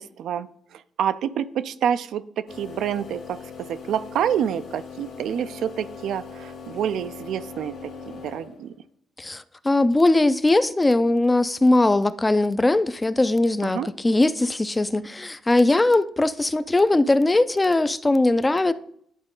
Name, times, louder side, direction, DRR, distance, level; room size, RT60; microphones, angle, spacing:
voice 1, 0.0-8.7 13.6-13.9, right 9 dB, 75° right, 0.3 m, -28 dB
sound 1, 2.5-8.8, left 5 dB, 80° left, 1.3 m, -40 dB
voice 2, 9.2-18.7, left 2 dB, 15° left, 0.4 m, -20 dB
11.0 x 3.9 x 3.7 m
cardioid pair, 90°, 0 cm